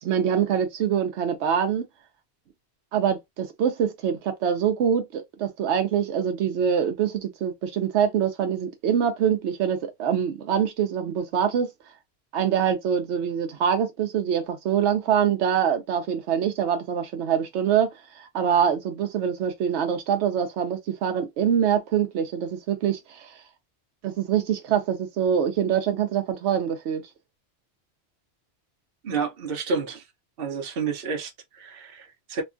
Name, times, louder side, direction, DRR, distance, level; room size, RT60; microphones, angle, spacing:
voice 1, 0.0-1.9 2.9-11.7 12.3-23.3 24.0-27.0, right 8 dB, 85° right, 0.9 m, -24 dB
voice 2, 29.0-30.0 30.4-32.4, right 5 dB, 60° right, 0.9 m, -30 dB
3.0 x 2.3 x 2.5 m
omnidirectional pair, 1.1 m